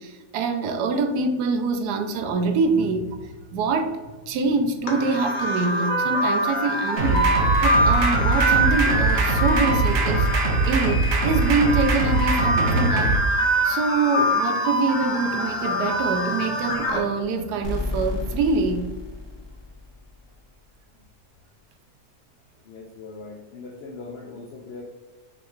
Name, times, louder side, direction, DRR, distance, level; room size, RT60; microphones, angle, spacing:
voice 1, 0.0-4.0 4.3-10.3 10.7-13.2 13.6-18.8, right 3 dB, 80° right, 6 dB, 1.1 m, -25 dB
sound 1, 4.9-17.0, right 1 dB, 45° left, 0.7 m, -24 dB
sound 2, 7.0-13.2, right 3 dB, 60° right, 0.7 m, -22 dB
sound 3, 17.6-20.4, left 3 dB, 60° left, 1.0 m, -32 dB
voice 2, 22.6-24.8, left 3 dB, 80° left, 0 dB, 0.5 m, -40 dB
5.6 x 3.0 x 2.4 m, 1.2 s
omnidirectional pair, 1.7 m